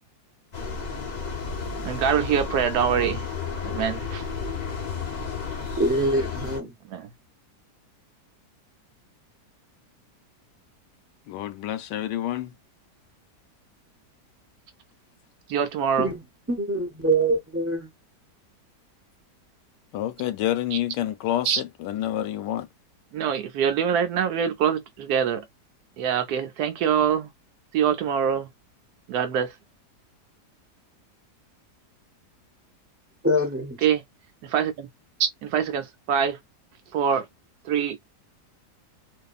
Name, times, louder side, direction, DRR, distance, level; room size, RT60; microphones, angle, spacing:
sound 1, 0.5-6.6, left 4 dB, 45° left, 0.6 m, -32 dB
voice 1, 1.8-3.2 3.6-4.2 6.9-7.1 15.5-16.1 20.7-20.8 21.4-21.6 23.1-25.4 26.0-27.3 27.7-28.5 29.1-29.5 33.8-34.0 34.5-34.9 35.2-36.4 36.9-37.2 37.7-38.0, right 8 dB, 75° right, 1.1 m, -24 dB
voice 2, 5.8-6.7 16.0-17.9 33.2-33.9, right 1 dB, 10° right, 0.7 m, -24 dB
voice 3, 11.3-12.5 19.9-22.7, left 12 dB, 90° left, 1.2 m, -28 dB
2.6 x 2.4 x 2.4 m
omnidirectional pair, 1.8 m